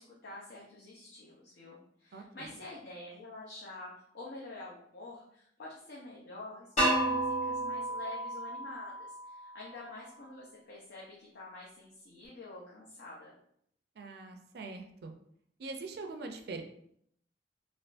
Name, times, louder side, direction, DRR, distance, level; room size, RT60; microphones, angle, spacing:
voice 1, 0.0-13.3, left 2 dB, 65° left, -5 dB, 0.6 m, -48 dB
voice 2, 2.1-2.5 14.0-15.1 15.6-16.6, right 3 dB, 60° right, 4 dB, 0.4 m, -43 dB
sound 1, 6.8-9.7, right 1 dB, 40° left, 1.3 m, -32 dB
3.4 x 2.5 x 2.5 m, 0.69 s
head